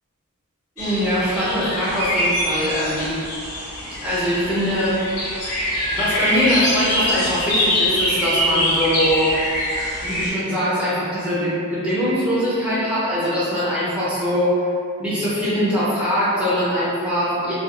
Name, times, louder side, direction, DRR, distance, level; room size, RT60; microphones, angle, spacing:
sound 1, 0.8-10.3, left 1 dB, 80° left, 0.8 m, -23 dB
voice 1, 0.8-3.2 4.0-5.0 5.9-9.3 10.0-14.6 15.0-17.5, equal, 5° right, -10 dB, 0.5 m, -22 dB
2.3 x 2.3 x 2.9 m, 2.4 s
head